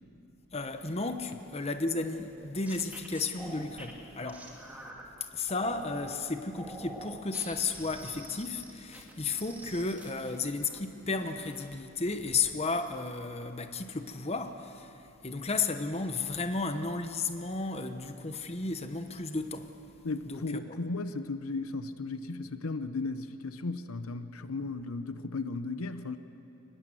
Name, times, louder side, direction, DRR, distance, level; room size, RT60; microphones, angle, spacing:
voice 1, 0.5-4.5 5.2-19.7 20.2-20.8, left 3 dB, 30° left, 8 dB, 0.9 m, -33 dB
sound 1, 2.1-5.0 5.5-6.1 6.5-10.8 11.1-11.8 12.1-12.5, right 1 dB, 5° right, 2.0 m, -47 dB
voice 2, 20.0-26.2, left 3 dB, 75° left, 11 dB, 0.8 m, -35 dB
23.5 x 20.0 x 7.7 m, 2.8 s
head